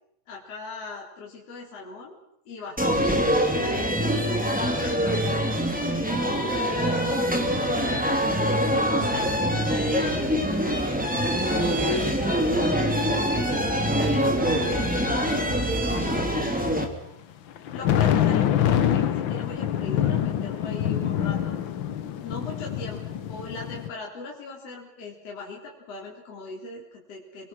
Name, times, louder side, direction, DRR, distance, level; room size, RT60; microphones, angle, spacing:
voice 1, 0.3-2.2 2.5-7.7 8.7-10.8 17.7-21.6 22.2-27.5, left 3 dB, 50° left, -2 dB, 4.4 m, -40 dB
sound 1, 2.8-16.8, equal, 5° right, 2.5 m, -24 dB
sound 2, 6.1-6.5 6.8-12.9 13.5-14.8 17.5-23.9, left 10 dB, 85° left, 1.0 m, -27 dB
voice 2, 11.5-16.8, left 1 dB, 60° right, -2 dB, 8.9 m, -37 dB
28.5 x 23.0 x 6.2 m, 0.77 s
omnidirectional pair, 3.8 m